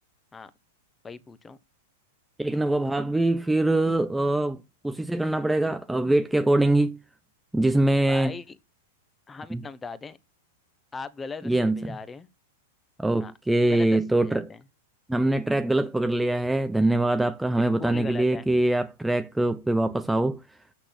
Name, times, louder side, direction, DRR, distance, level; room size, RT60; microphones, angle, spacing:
voice 1, 1.0-1.6 8.1-8.6 9.3-10.2 10.9-12.3 13.2-13.3 13.7-14.6 17.5-18.5, left 4 dB, 15° left, 1.2 m, -39 dB
voice 2, 2.4-4.6 4.8-7.0 7.5-8.3 9.5-9.6 11.4-12.0 13.0-14.4 15.1-20.4, right 1 dB, 5° right, 0.7 m, -23 dB
8.8 x 6.5 x 5.9 m
hypercardioid pair, 115°, 0 cm